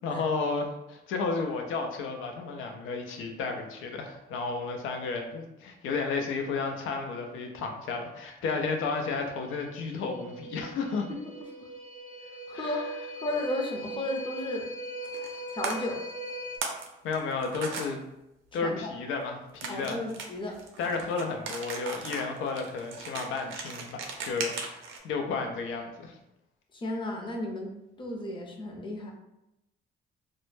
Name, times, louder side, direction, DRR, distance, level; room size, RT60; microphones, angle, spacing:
voice 1, 0.0-11.1 12.5-12.7 17.0-18.0 18.5-20.0 20.8-26.1, left 4 dB, 85° left, 3 dB, 0.4 m, -32 dB
sound 1, 9.1-16.6, right 1 dB, 35° right, 0.5 m, -40 dB
voice 2, 11.1-11.7 12.5-12.8 13.2-14.7 15.5-16.0 18.6-18.9 19.7-20.6 20.8-21.0 26.7-29.1, left 1 dB, 25° left, 1 dB, 0.5 m, -34 dB
sound 2, 15.0-15.4 15.6-15.7 16.3-16.9 17.1-17.9 19.6-25.0, right 5 dB, 80° right, 0.5 m, -37 dB
2.1 x 2.0 x 3.1 m, 0.91 s
cardioid pair, 90°, 20 cm